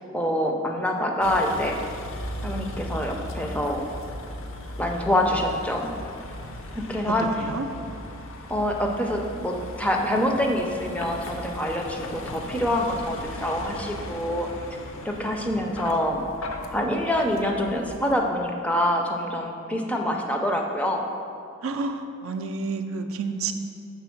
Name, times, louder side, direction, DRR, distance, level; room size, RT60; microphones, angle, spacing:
voice 1, 0.1-1.8 2.4-3.8 4.8-5.9 6.7-7.3 8.5-14.5 15.0-16.2 16.7-21.1, left 1 dB, 5° left, 1 dB, 0.4 m, -26 dB
Vehicle, 1.2-18.2, left 1 dB, 65° left, 0.5 m, -38 dB
voice 2, 21.6-23.5, right 4 dB, 70° right, 6 dB, 0.4 m, -30 dB
6.1 x 3.8 x 5.7 m, 2.5 s
head